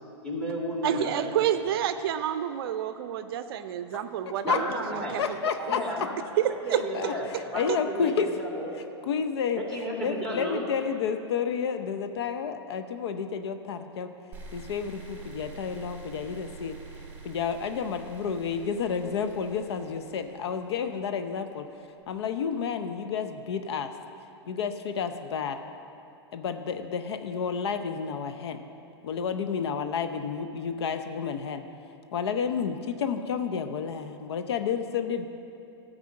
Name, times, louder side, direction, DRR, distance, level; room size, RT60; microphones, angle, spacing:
voice 1, 0.2-1.5 4.4-5.2 5.6-6.2 6.6-7.3 7.5-8.7 9.5-10.6, right 1 dB, 5° left, -2 dB, 2.1 m, -33 dB
voice 2, 0.8-5.7 6.4-6.8 7.3-7.4 7.7-7.8, right 11 dB, 60° right, 10 dB, 0.5 m, -29 dB
voice 3, 5.2-5.8 6.9-7.1 7.5-8.3 9.0-9.6 10.0-14.1 14.5-16.8 17.2-21.6 22.1-23.9 24.5-25.6 26.3-28.6 29.0-31.6 32.1-35.3, left 6 dB, 70° left, 8 dB, 0.6 m, -30 dB
sound 1, 14.3-21.4, right 4 dB, 15° right, 1.8 m, -46 dB
12.0 x 4.9 x 7.5 m, 2.7 s
hypercardioid pair, 125°, 14 cm